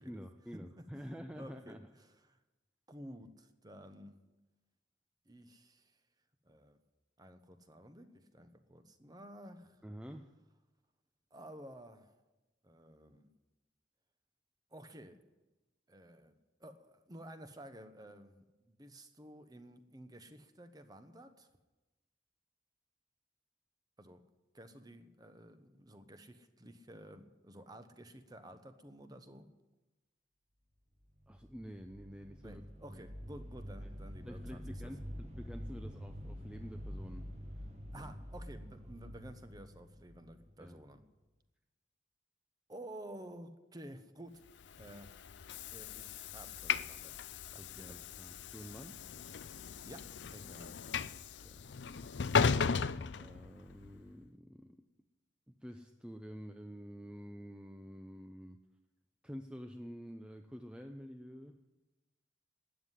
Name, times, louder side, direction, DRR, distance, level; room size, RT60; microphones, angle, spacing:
voice 1, 0.0-1.8 9.8-10.3 31.3-33.0 33.8-33.9 34.2-38.1 40.6-40.8 47.6-49.0 51.4-52.1 53.2-54.8 55.5-58.6 59.2-61.6, equal, 5° right, 5 dB, 0.6 m, -49 dB
voice 2, 0.8-1.1 1.3-2.4 2.9-4.3 5.3-6.0 6.4-6.8 7.2-9.8 11.3-12.2 12.6-13.3 14.7-15.2 15.9-21.5 24.0-24.2 24.5-29.5 32.4-34.9 37.9-41.0 42.7-44.4 44.8-45.1 45.7-47.2 47.5-48.0 49.8-50.8, right 1 dB, 20° right, 9 dB, 1.0 m, -52 dB
sound 1, 31.2-41.0, equal, 40° right, 1.5 m, -47 dB
Train / Sliding door, 44.6-53.9, left 5 dB, 90° left, 0.5 m, -36 dB
13.0 x 9.3 x 9.9 m, 1.1 s
head